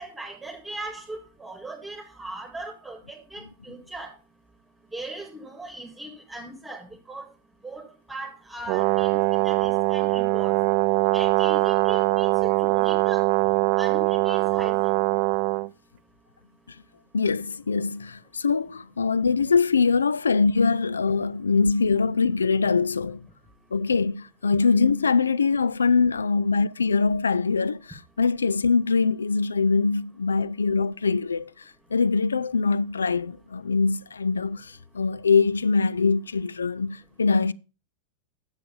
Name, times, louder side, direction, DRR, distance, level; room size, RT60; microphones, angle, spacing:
voice 1, 0.0-4.1 4.9-7.3 7.6-10.6 11.1-13.2 13.8-14.8, right 2 dB, 5° right, 2.0 m, -38 dB
Brass instrument, 8.7-15.7, right 19 dB, 40° right, 0.4 m, -22 dB
voice 2, 17.1-23.2 23.7-31.5 31.9-37.5, left 4 dB, 75° left, 0.4 m, -23 dB
10.0 x 7.5 x 5.3 m
figure-of-eight pair, 90°, 0 cm